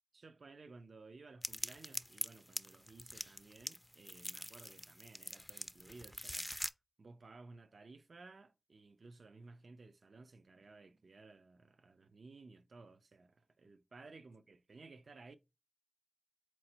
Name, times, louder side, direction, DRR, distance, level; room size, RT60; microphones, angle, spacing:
voice 1, 0.2-6.5 7.0-15.4, right 3 dB, 75° right, 0.4 m, -57 dB
sound 1, 1.4-6.7, left 1 dB, 10° left, 0.3 m, -44 dB
4.1 x 3.0 x 2.8 m
wide cardioid pair, 60°, 0 cm